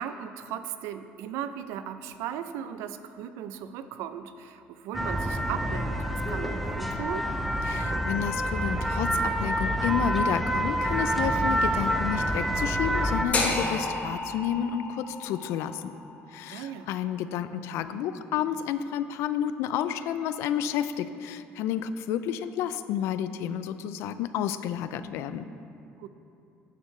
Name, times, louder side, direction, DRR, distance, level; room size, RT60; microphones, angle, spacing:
voice 1, 0.0-7.3 16.5-16.9 26.0-26.1, right 9 dB, 85° right, 11 dB, 0.4 m, -37 dB
sound 1, 4.9-13.3, right 1 dB, ahead, 0.5 m, -27 dB
voice 2, 7.7-15.9 16.3-25.5, left 9 dB, 75° left, 12 dB, 0.4 m, -31 dB
sound 2, 13.3-17.4, left 2 dB, 35° left, 1.3 m, -32 dB
11.5 x 6.6 x 3.2 m, 2.6 s
cardioid pair, 125°, 5 cm